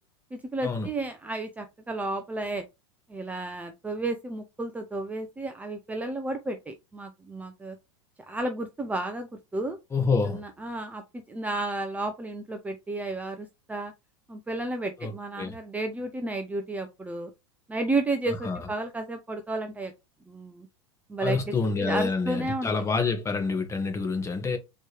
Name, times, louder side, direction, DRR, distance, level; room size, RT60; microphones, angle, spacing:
voice 1, 0.3-2.6 3.1-7.8 8.3-9.8 10.3-13.9 14.3-17.3 17.7-19.9 20.3-20.7 21.1-21.4 21.8-22.7, right 2 dB, 10° right, 0.6 m, -32 dB
voice 2, 9.9-10.4 15.0-15.6 18.3-18.6 21.2-24.6, left 4 dB, 20° left, 1.3 m, -27 dB
4.4 x 3.1 x 3.3 m
hypercardioid pair, 105°, 15 cm